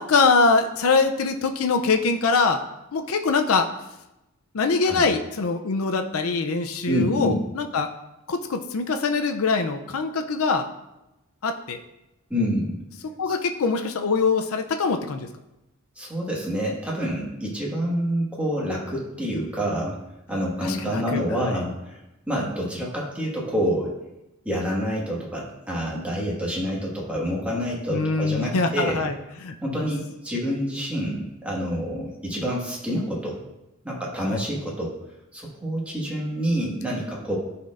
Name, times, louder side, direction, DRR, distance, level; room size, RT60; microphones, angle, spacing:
voice 1, 0.0-2.6 2.9-3.7 4.5-7.9 8.3-10.7 11.4-11.8 13.0-15.3 20.6-21.6 27.9-29.2 29.4-29.9 34.3-34.4, left 4 dB, 80° left, 6 dB, 0.5 m, -23 dB
voice 2, 6.9-7.3 12.3-12.7 16.0-20.0 20.3-22.0 22.3-23.9 24.4-29.0 29.6-33.4 33.8-34.9 35.3-37.4, equal, 5° right, -4 dB, 1.6 m, -27 dB
12.5 x 4.3 x 2.5 m, 0.93 s
head